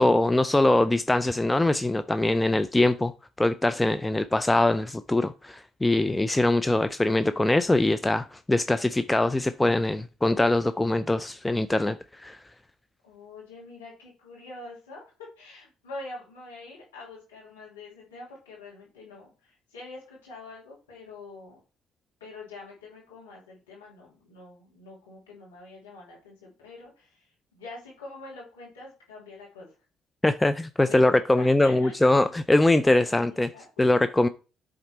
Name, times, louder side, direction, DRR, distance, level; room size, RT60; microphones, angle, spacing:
voice 1, 0.0-3.1 3.4-12.4 30.2-33.5 33.8-34.3, left 2 dB, 15° left, 0.4 m, -22 dB
voice 2, 13.0-15.0 15.4-21.6 22.2-29.7 30.8-32.1 33.1-33.9, left 3 dB, 90° left, 2.6 m, -45 dB
8.6 x 3.9 x 4.3 m
hypercardioid pair, 50°, 0 cm